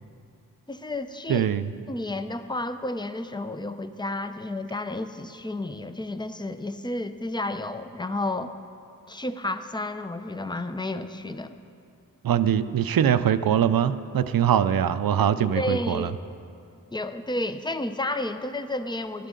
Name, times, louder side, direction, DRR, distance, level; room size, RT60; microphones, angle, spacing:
voice 1, 0.7-1.5 1.9-8.5 9.1-11.6 15.5-16.2 16.9-19.3, left 2 dB, 15° left, 10 dB, 0.6 m, -31 dB
voice 2, 1.3-1.7 12.2-16.1, right 9 dB, 85° right, 12 dB, 0.5 m, -22 dB
17.0 x 13.0 x 3.8 m, 2.5 s
wide cardioid pair, 75°, 34 cm